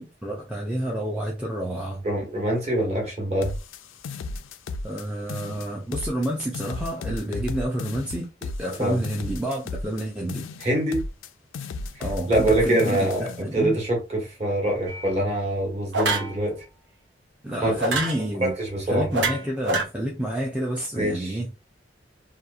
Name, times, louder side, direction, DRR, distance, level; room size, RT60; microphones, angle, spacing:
voice 1, 0.0-2.1 4.8-10.5 12.0-13.7 17.4-18.5 18.9-21.5, right 1 dB, 5° right, 0.4 m, -29 dB
voice 2, 2.0-3.5 8.8-9.0 10.6-11.0 11.9-16.6 17.6-17.7 18.4-19.3 20.9-21.4, right 1 dB, 35° right, 1.1 m, -24 dB
sound 1, 3.4-5.0 5.3-6.3 6.5-10.0 10.3-11.3 11.5-13.4, left 3 dB, 90° left, 0.3 m, -34 dB
sound 2, 14.9-15.1 15.9-16.3 17.8-18.2 19.1-19.8, right 2 dB, 65° right, 0.7 m, -25 dB
2.8 x 2.3 x 2.4 m
head